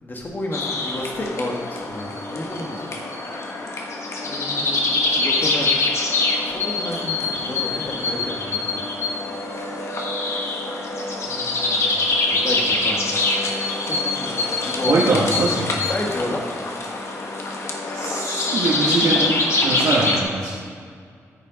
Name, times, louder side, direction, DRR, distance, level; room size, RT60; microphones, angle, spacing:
voice 1, 0.0-2.9 4.2-4.9 5.1-5.7 6.4-8.8 11.3-12.0 12.3-13.0 13.8-15.0 15.9-16.4, left 1 dB, 35° left, 0 dB, 1.7 m, -31 dB
sound 1, 0.5-20.2, left 3 dB, 55° left, 1.4 m, -24 dB
voice 2, 14.9-15.7 17.9-19.3 19.6-20.6, right 3 dB, 75° right, -6 dB, 2.0 m, -22 dB
13.5 x 5.5 x 5.2 m, 2.2 s
wide cardioid pair, 120°, 6 cm